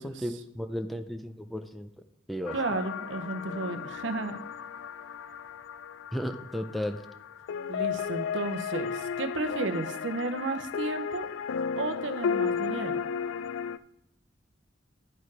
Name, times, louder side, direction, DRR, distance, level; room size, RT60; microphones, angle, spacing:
voice 1, 0.0-1.9 2.3-2.6 6.1-7.0, equal, ahead, 8 dB, 0.4 m, -34 dB
sound 1, 2.5-13.8, left 6 dB, 85° left, 0.3 m, -34 dB
voice 2, 2.5-4.4 7.7-11.3 11.8-13.0, right 3 dB, 70° right, 9 dB, 0.8 m, -33 dB
11.0 x 4.6 x 4.8 m, 0.80 s
head